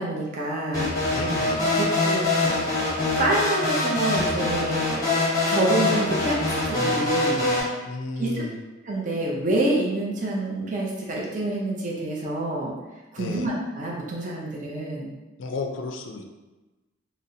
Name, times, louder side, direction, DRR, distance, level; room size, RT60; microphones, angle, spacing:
voice 1, 0.0-1.2 1.8-2.3 3.1-5.0 5.5-7.4 8.2-8.4 8.8-12.7 13.1-15.1, right 2 dB, 35° right, -4 dB, 0.5 m, -27 dB
sound 1, 0.7-7.6, left 2 dB, 15° left, 0.7 m, -24 dB
voice 2, 1.1-1.8 7.9-8.6 13.2-13.6 15.4-16.3, left 3 dB, 65° left, 4 dB, 0.4 m, -33 dB
4.0 x 2.0 x 2.6 m, 1.1 s
head